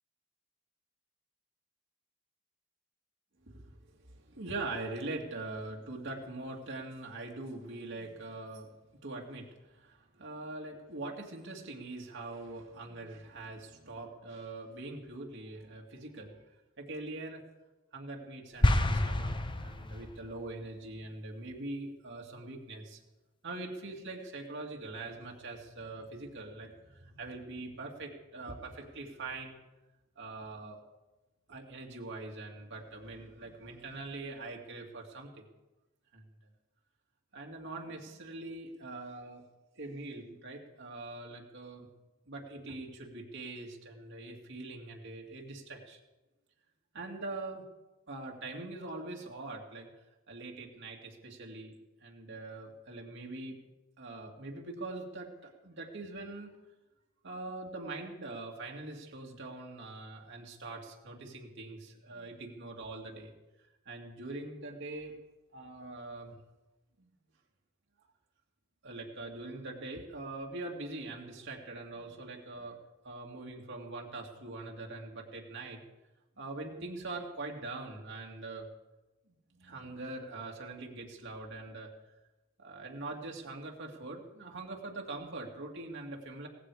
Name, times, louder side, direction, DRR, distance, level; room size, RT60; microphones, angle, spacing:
voice 1, 3.5-8.7 9.0-16.3 16.8-17.4 17.9-23.0 23.4-29.6 30.2-30.8 31.5-35.4 36.1-36.2 37.3-39.4 39.8-41.9 42.3-46.0 46.9-47.6 48.1-49.9 50.3-51.7 52.0-53.6 54.0-56.5 57.2-63.3 63.9-65.1 65.5-66.4 67.0-67.1 68.8-72.8 73.0-75.8 76.4-78.7 79.3-81.9 82.6-86.5, right 2 dB, 60° right, 0 dB, 2.5 m, -43 dB
sound 1, 18.6-20.3, left 1 dB, 25° left, 0.9 m, -28 dB
18.0 x 15.5 x 4.9 m, 1.1 s
head